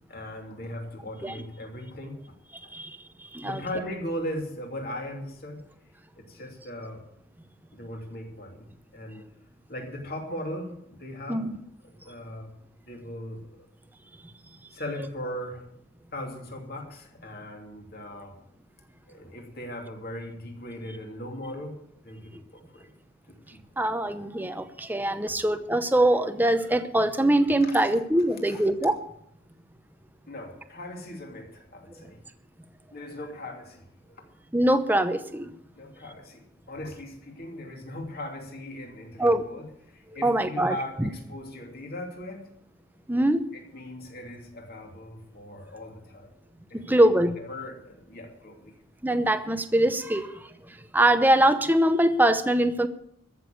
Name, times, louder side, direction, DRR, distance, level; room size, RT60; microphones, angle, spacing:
voice 1, 0.1-2.3 2.6-2.7 3.4-5.6 6.2-7.0 7.7-9.2 9.7-11.4 12.0-12.5 12.9-13.5 14.7-15.7 16.1-18.4 19.1-21.8 22.0-22.9 23.3-23.6 27.7-28.0 28.4-28.7 30.3-32.2 32.9-34.2 35.7-42.5 43.5-46.3 46.7-48.7, left 1 dB, 45° left, 2 dB, 2.8 m, -39 dB
voice 2, 2.7-3.6 11.3-11.6 23.8-29.0 34.5-35.5 39.2-39.4 40.2-41.1 43.1-43.4 46.7-47.4 49.0-52.9, right 1 dB, 10° right, 9 dB, 0.7 m, -23 dB
14.0 x 7.0 x 9.3 m, 0.74 s
head